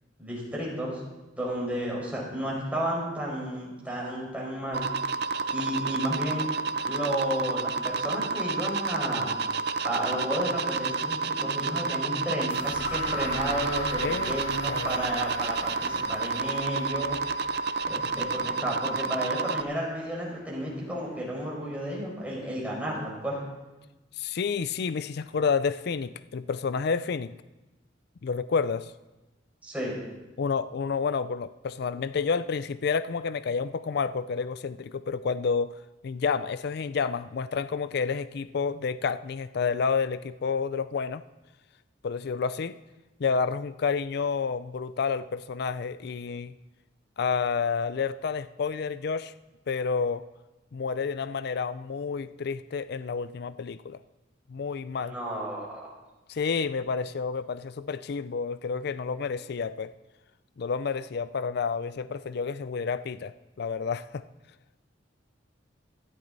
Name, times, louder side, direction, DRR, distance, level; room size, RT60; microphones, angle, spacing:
voice 1, 0.2-1.0 1.4-4.9 5.5-6.5 6.8-9.3 9.8-17.2 17.9-23.4 29.6-30.0 54.9-55.8, equal, 10° right, -4 dB, 4.9 m, -32 dB
sound 1, 4.7-19.6, right 4 dB, 60° right, 0.6 m, -30 dB
sound 2, 12.5-20.4, left 2 dB, 85° left, 5.7 m, -41 dB
voice 2, 14.0-14.4 14.7-15.0 24.2-27.3 28.2-28.9 30.4-35.7 36.0-41.2 42.0-42.8 43.2-46.5 47.2-49.3 49.7-50.2 50.7-54.0 54.5-55.2 56.3-59.9 60.6-63.3 63.6-64.2, left 5 dB, 60° left, 14 dB, 0.4 m, -29 dB
17.5 x 13.5 x 4.0 m, 1.1 s
head